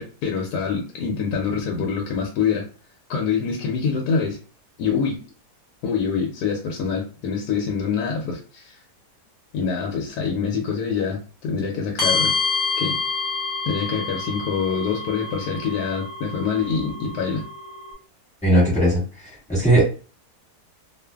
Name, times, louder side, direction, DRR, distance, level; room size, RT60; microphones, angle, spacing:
voice 1, 0.0-2.6 3.1-4.4 4.8-5.2 5.8-8.8 9.5-12.3 12.8-13.0 13.7-17.4, left 6 dB, 75° left, 1 dB, 1.1 m, -25 dB
sound 1, 12.0-17.9, left 4 dB, 30° left, 0.9 m, -28 dB
voice 2, 18.4-19.0 19.5-19.9, right 1 dB, 5° left, -7 dB, 1.1 m, -17 dB
2.4 x 2.4 x 2.2 m, 0.35 s
omnidirectional pair, 1.8 m